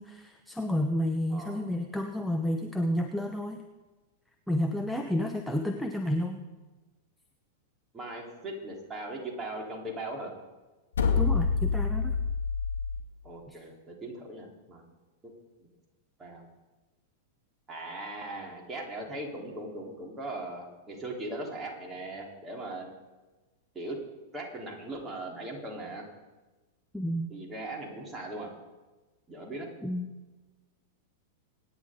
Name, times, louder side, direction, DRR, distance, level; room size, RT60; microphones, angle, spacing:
voice 1, 0.0-3.7 4.5-6.4 11.2-12.1 13.5-13.6 26.9-27.3 29.8-30.1, equal, ahead, 3 dB, 1.1 m, -30 dB
voice 2, 7.9-10.3 13.2-14.8 15.6-15.7 16.2-16.5 17.7-22.9 23.7-24.0 24.3-26.0 27.3-28.5 29.3-29.7, right 2 dB, 20° right, -1 dB, 3.8 m, -39 dB
sound 1, 10.9-13.0, left 5 dB, 75° left, 1.8 m, -27 dB
25.5 x 10.0 x 3.9 m, 1.2 s
figure-of-eight pair, 95°, 0 cm